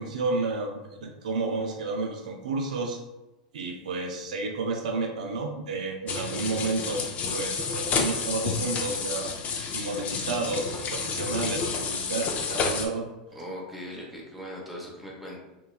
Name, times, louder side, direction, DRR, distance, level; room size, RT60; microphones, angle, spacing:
voice 1, 0.0-3.0 3.5-7.0 7.3-9.4 9.7-13.1, right 3 dB, 80° right, 2 dB, 0.4 m, -31 dB
sound 1, 6.1-12.9, left 5 dB, 35° left, 0.4 m, -30 dB
voice 2, 13.3-15.4, equal, 5° right, -4 dB, 0.7 m, -39 dB
3.0 x 2.2 x 2.2 m, 1.0 s
hypercardioid pair, 100°, 4 cm